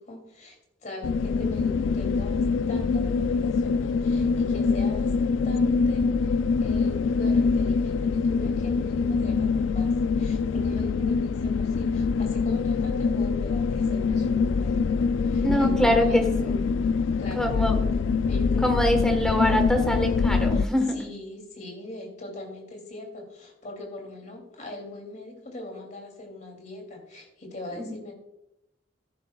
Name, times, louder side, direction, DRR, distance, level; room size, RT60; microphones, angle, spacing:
voice 1, 0.0-5.1 5.4-6.3 6.6-16.3 17.2-17.9 18.3-19.1 19.5-19.7 20.5-20.6 20.9-28.1, left 1 dB, 40° left, 2 dB, 2.8 m, -41 dB
sound 1, 1.0-20.7, left 5 dB, 80° left, 0.4 m, -24 dB
voice 2, 15.4-16.2 16.5-16.7 17.3-17.8 18.6-21.0 27.8-27.9, equal, 5° left, 4 dB, 1.3 m, -24 dB
13.5 x 11.0 x 2.3 m, 0.89 s
head